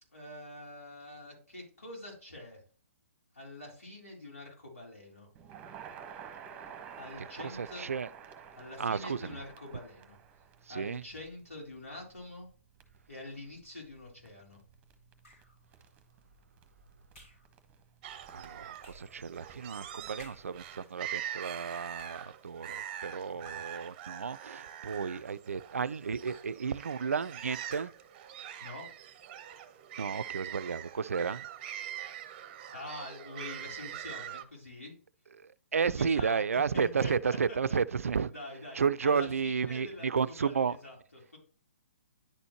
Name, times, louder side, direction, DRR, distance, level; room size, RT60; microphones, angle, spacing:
voice 1, 0.1-2.6 3.3-5.3 7.0-7.9 8.6-10.2 10.7-12.5 13.1-14.6 23.3-23.6 28.6-28.9 32.7-34.9 36.0-36.4 36.7-37.8 38.3-41.4, left 1 dB, 85° left, 3.5 m, -45 dB
Crackle, 5.3-20.8, right 7 dB, 20° right, 1.1 m, -52 dB
voice 2, 7.2-8.1 8.8-9.4 10.7-11.0 18.3-27.9 30.0-31.5 35.4-38.3 38.7-40.8, right 6 dB, 75° right, 0.3 m, -32 dB
sound 1, 15.2-15.6 17.1-17.5 18.8-19.2 20.2-20.6 21.8-22.4 23.4-23.9 24.7-25.3 26.2-26.6 27.6-28.1, left 1 dB, 60° left, 3.2 m, -56 dB
Hanningfield Reservoir Soundscape, 18.0-34.4, right 11 dB, 35° right, 0.7 m, -44 dB
10.5 x 4.3 x 2.9 m
figure-of-eight pair, 130°, 8 cm